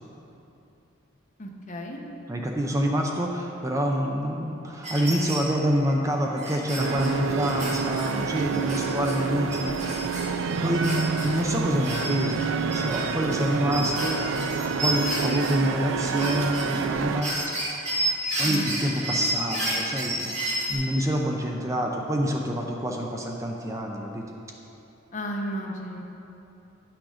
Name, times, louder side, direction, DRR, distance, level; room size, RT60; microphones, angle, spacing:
voice 1, 1.4-2.0 8.5-8.6 18.4-18.6 25.1-26.0, equal, 40° left, 0 dB, 1.0 m, -33 dB
voice 2, 2.3-10.8 11.2-17.3 18.4-20.3 20.7-24.2, equal, 15° right, 0 dB, 0.5 m, -27 dB
sound 1, 4.8-5.5 5.9-6.0 6.4-9.2 9.5-11.4 11.8-15.5 15.9-16.8 17.2-20.7, right 1 dB, 35° right, 1.9 m, -31 dB
sound 2, 6.8-17.2, right 5 dB, 70° right, 0.4 m, -28 dB
10.0 x 6.1 x 4.9 m, 2.8 s
head